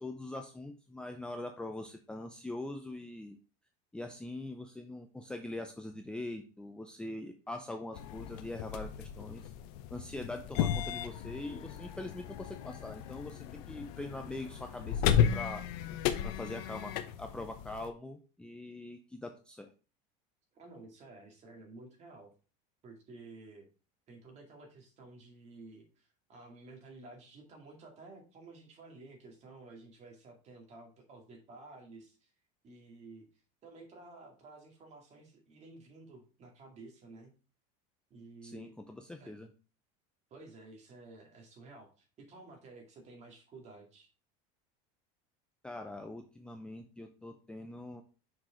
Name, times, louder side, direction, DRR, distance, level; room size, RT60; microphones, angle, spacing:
voice 1, 0.0-3.4 3.9-9.5 9.9-15.6 16.2-19.7 38.4-39.5 45.6-48.0, left 2 dB, 5° left, 4 dB, 0.5 m, -43 dB
sound 1, 7.9-17.9, left 9 dB, 75° left, 0.8 m, -34 dB
voice 2, 20.5-22.3 22.8-23.7 24.1-32.3 32.6-33.3 33.6-37.3 38.1-38.7 39.2-39.3 40.3-44.1, right 3 dB, 35° right, 2 dB, 2.1 m, -53 dB
6.2 x 4.7 x 3.7 m, 0.36 s
supercardioid pair, 140°, 20 cm